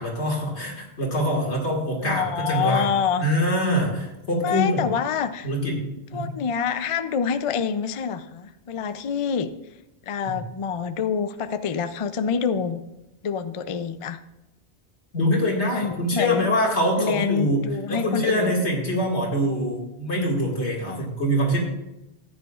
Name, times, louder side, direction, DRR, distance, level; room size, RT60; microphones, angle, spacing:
voice 1, 0.0-2.9 3.2-4.8 5.4-5.8 6.1-6.3 10.2-10.4 15.1-21.6, equal, 80° left, -1 dB, 2.4 m, -24 dB
voice 2, 2.0-3.3 4.4-5.5 6.1-9.5 10.1-12.8 13.2-14.2 15.7-16.5 17.0-18.6 20.9-21.0, left 6 dB, 50° left, 11 dB, 0.4 m, -26 dB
14.5 x 9.7 x 2.4 m, 0.94 s
omnidirectional pair, 1.1 m